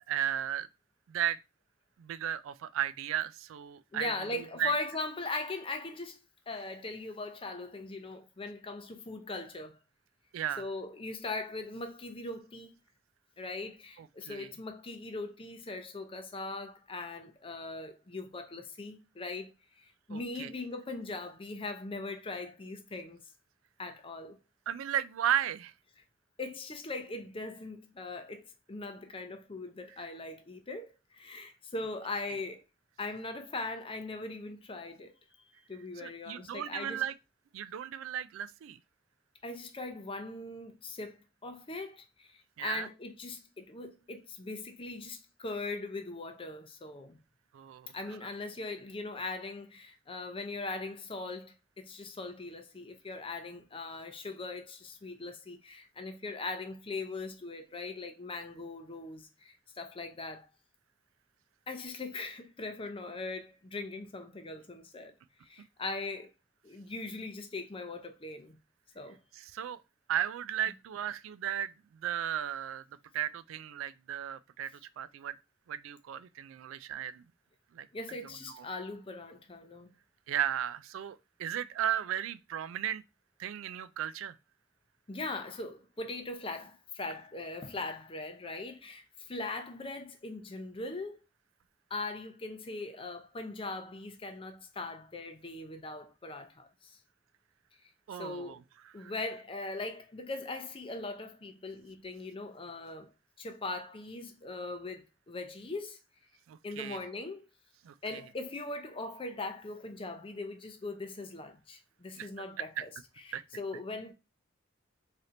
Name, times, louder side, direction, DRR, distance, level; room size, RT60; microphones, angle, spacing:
voice 1, 0.1-0.7 1.1-1.4 2.0-4.1 4.6-4.7 10.3-10.6 14.3-14.5 20.1-20.5 24.7-25.7 36.0-37.1 37.5-38.8 42.6-42.9 47.5-47.9 69.4-69.8 70.1-71.7 72.0-72.8 73.1-75.3 75.7-77.2 77.7-77.9 78.5-78.6 80.3-83.0 83.4-84.4 98.1-98.6 99.0-99.1 106.5-107.0 107.8-108.2 112.2-112.4 112.8-112.9 113.3-113.4, right 10 dB, 80° right, 0.3 m, -35 dB
voice 2, 3.9-6.2 6.5-9.8 10.6-12.7 13.4-23.2 23.8-24.4 26.4-32.6 33.0-35.1 35.7-37.0 39.4-41.2 41.4-47.2 47.9-60.5 61.7-65.1 65.4-66.3 66.6-68.6 68.9-69.2 77.9-79.9 85.1-91.2 91.9-97.0 98.1-98.6 98.9-103.1 103.4-106.0 106.6-107.4 108.0-112.9 113.2-114.1, left 3 dB, 25° left, 0.6 m, -40 dB
3.3 x 2.8 x 3.7 m
head